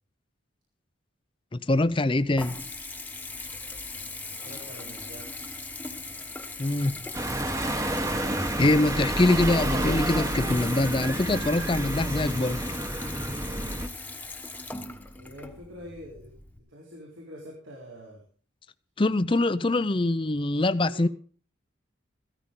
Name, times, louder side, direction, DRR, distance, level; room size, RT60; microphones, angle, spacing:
voice 1, 1.5-2.6 6.6-7.0 8.6-12.6 19.0-21.1, left 2 dB, 25° left, 0.5 m, -24 dB
Water tap faucet / Bathtub (filling or washing) / Trickle dribble, 1.7-16.6, left 3 dB, 10° left, 1.1 m, -40 dB
voice 2, 4.4-5.4 15.2-18.2 20.8-21.1, equal, 75° right, 4.0 m, -45 dB
sound 1, 7.1-13.9, right 1 dB, 15° right, 1.0 m, -29 dB
15.5 x 13.5 x 3.8 m
head